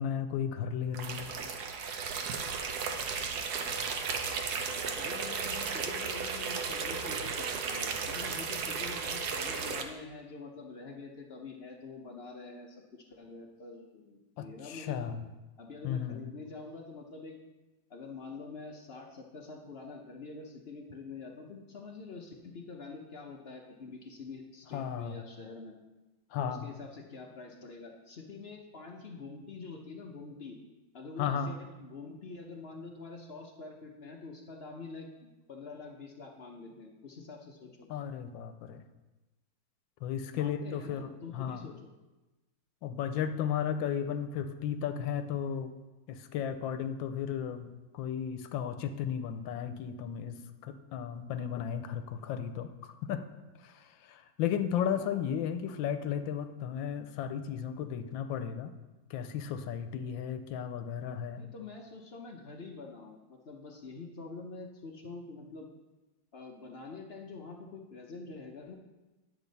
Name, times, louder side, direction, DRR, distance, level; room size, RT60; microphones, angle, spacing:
voice 1, 0.0-1.2 14.4-15.2 15.8-16.2 24.7-25.2 26.3-26.7 31.2-31.5 37.9-38.8 40.0-41.7 42.8-45.7 46.1-53.2 53.6-58.7 59.1-61.4, left 8 dB, 90° left, 9 dB, 1.4 m, -34 dB
sound 1, 0.9-9.8, right 5 dB, 65° right, 1.2 m, -35 dB
voice 2, 4.9-15.1 15.6-17.4 17.9-25.7 26.4-30.6 30.9-37.9 40.3-41.9 54.9-55.2 61.4-65.7 66.3-68.7, left 4 dB, 55° left, 1 dB, 0.7 m, -46 dB
10.0 x 7.3 x 4.0 m, 1.1 s
omnidirectional pair, 2.1 m